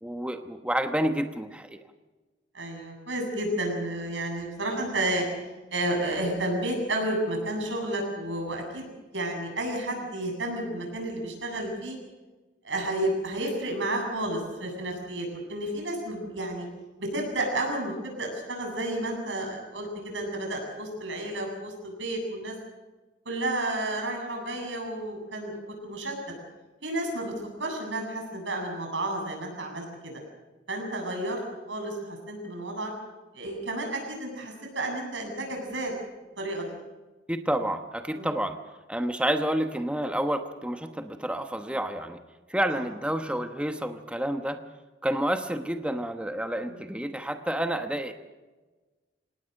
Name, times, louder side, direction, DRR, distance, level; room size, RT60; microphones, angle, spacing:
voice 1, 0.0-1.8 37.3-38.6 38.9-42.2 42.5-44.6 45.0-48.1, right 1 dB, 5° right, 7 dB, 1.0 m, -29 dB
voice 2, 2.5-5.2 5.7-12.0 12.6-16.7 17.0-22.5 23.2-26.2 26.8-27.3 27.6-30.2 30.7-31.4 31.7-32.9 33.3-35.9 36.4-36.7 38.1-38.3 42.7-42.8 46.6-46.8, right 1 dB, 85° right, 2 dB, 8.0 m, -31 dB
26.5 x 18.5 x 6.5 m, 1.2 s
head